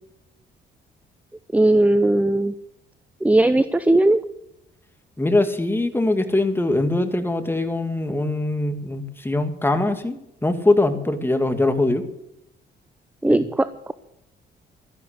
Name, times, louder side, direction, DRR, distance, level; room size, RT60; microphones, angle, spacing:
voice 1, 1.5-2.5 3.2-4.2 13.2-13.9, right 1 dB, 5° right, 14 dB, 0.7 m, -18 dB
voice 2, 5.2-12.1 13.3-13.4, left 2 dB, 10° left, 8 dB, 2.0 m, -22 dB
13.0 x 11.0 x 6.7 m, 0.86 s
cardioid pair, 90°, 20 cm